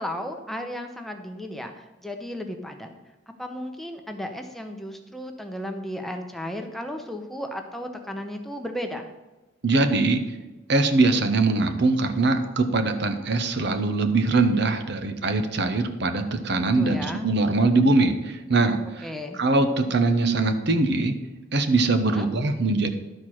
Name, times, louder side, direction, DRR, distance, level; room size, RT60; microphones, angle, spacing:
voice 1, 0.0-2.9 3.4-9.1 16.5-17.3 19.0-19.4 22.1-22.3, equal, ahead, 4 dB, 0.7 m, -34 dB
voice 2, 9.6-10.2 10.7-19.0 19.4-21.2 21.5-22.9, right 3 dB, 65° right, 8 dB, 0.8 m, -22 dB
11.5 x 4.4 x 6.2 m, 1.1 s
head